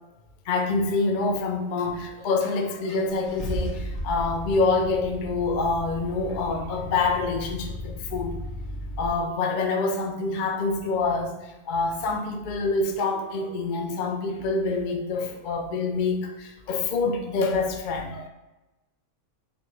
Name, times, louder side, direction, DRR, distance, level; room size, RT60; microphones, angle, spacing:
voice 1, 0.5-8.4 9.0-18.3, left 3 dB, 60° left, 4 dB, 0.5 m, -26 dB
Car / Engine starting, 2.2-2.3 2.9-9.1, equal, 25° left, 1.0 m, -35 dB
4.1 x 2.8 x 3.2 m, 1.0 s
omnidirectional pair, 1.4 m